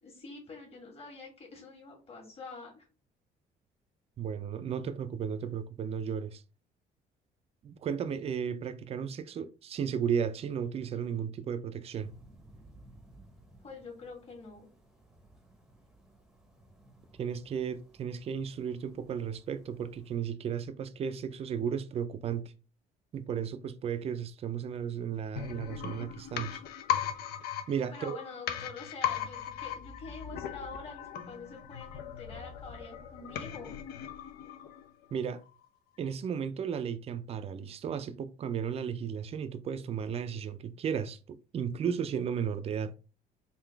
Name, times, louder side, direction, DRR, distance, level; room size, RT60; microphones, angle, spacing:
voice 1, 0.0-2.9 13.6-14.7 27.9-33.8, left 4 dB, 35° left, 1.6 m, -46 dB
voice 2, 4.2-6.4 7.6-12.1 17.2-22.5 23.1-26.6 27.7-28.2 35.1-35.4 36.0-42.9, right 7 dB, 35° right, 0.4 m, -34 dB
sound 1, 12.0-20.2, right 1 dB, 5° right, 0.7 m, -59 dB
sound 2, 25.4-35.1 35.4-35.5, left 10 dB, 70° left, 0.5 m, -38 dB
3.8 x 2.4 x 3.4 m
cardioid pair, 110°, 17 cm